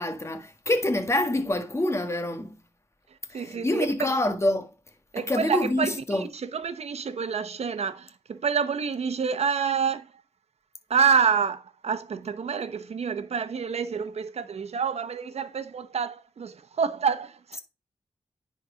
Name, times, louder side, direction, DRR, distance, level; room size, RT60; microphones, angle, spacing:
voice 1, 0.0-2.5 3.3-4.7 5.2-6.3, left 1 dB, 25° left, 1.6 m, -26 dB
voice 2, 3.3-4.1 5.1-10.1 10.9-17.6, right 6 dB, 70° right, 0.9 m, -28 dB
10.0 x 4.3 x 5.1 m
cardioid pair, 75°, 11 cm